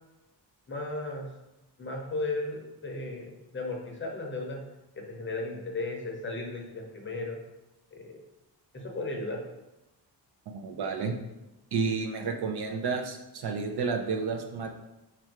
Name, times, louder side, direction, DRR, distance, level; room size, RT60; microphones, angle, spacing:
voice 1, 0.7-1.3 1.8-4.6 5.0-7.4 7.9-8.2 8.7-9.4, left 2 dB, 30° left, 0 dB, 0.6 m, -35 dB
voice 2, 10.5-11.1 11.7-14.7, right 5 dB, 65° right, 4 dB, 0.6 m, -31 dB
4.4 x 2.6 x 4.5 m, 0.99 s
wide cardioid pair, 180°, 42 cm